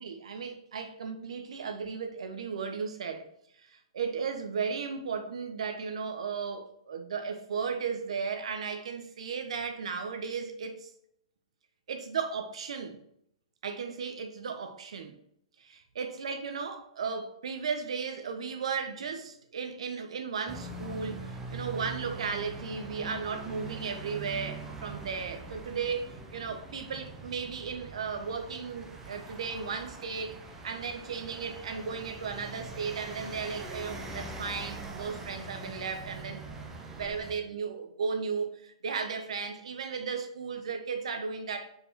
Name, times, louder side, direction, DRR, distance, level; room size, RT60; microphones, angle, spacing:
voice 1, 0.0-3.3 3.6-10.9 11.9-13.0 13.6-15.1 15.6-36.4 36.9-41.7, right 5 dB, 70° right, 1.1 m, -35 dB
sound 1, 20.5-37.3, right 2 dB, 10° right, 0.9 m, -43 dB
5.2 x 4.6 x 4.7 m
hypercardioid pair, 135°, 3 cm